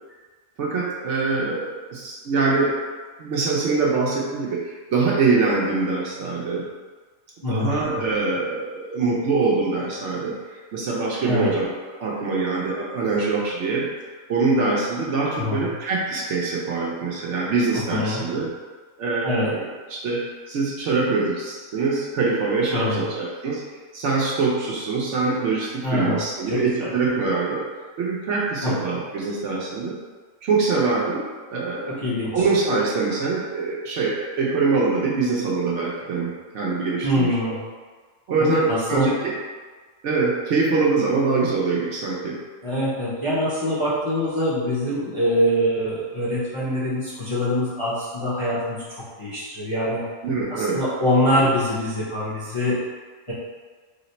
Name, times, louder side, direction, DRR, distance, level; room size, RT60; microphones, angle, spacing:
voice 1, 0.6-2.8 3.2-6.7 7.5-11.7 12.0-13.9 14.3-18.5 19.0-23.6 23.9-27.6 28.0-30.0 30.4-32.0 32.3-37.3 38.3-39.3 40.0-42.4 50.2-50.8, right 4 dB, 65° right, -4 dB, 0.9 m, -24 dB
voice 2, 7.4-7.8 11.3-11.5 15.4-15.7 17.9-18.2 19.2-19.5 22.7-23.1 25.8-26.2 26.5-26.9 28.6-28.7 32.0-32.5 37.0-37.6 38.4-39.1 42.6-50.0 50.5-52.8 53.3-53.4, left 1 dB, 30° left, -10 dB, 0.6 m, -24 dB
3.2 x 2.0 x 4.1 m, 1.4 s
omnidirectional pair, 1.4 m